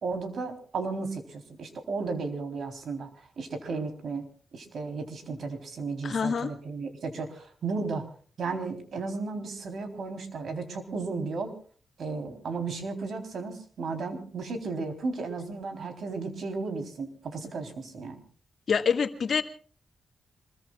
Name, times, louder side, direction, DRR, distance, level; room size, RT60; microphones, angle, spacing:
voice 1, 0.0-3.1 3.4-4.3 4.5-8.0 8.4-11.5 12.0-18.2, right 4 dB, 65° right, 5 dB, 3.8 m, -34 dB
voice 2, 6.0-6.5 18.7-19.4, left 6 dB, 55° left, 7 dB, 1.8 m, -26 dB
26.5 x 21.5 x 2.4 m, 0.43 s
wide cardioid pair, 110°, 0 cm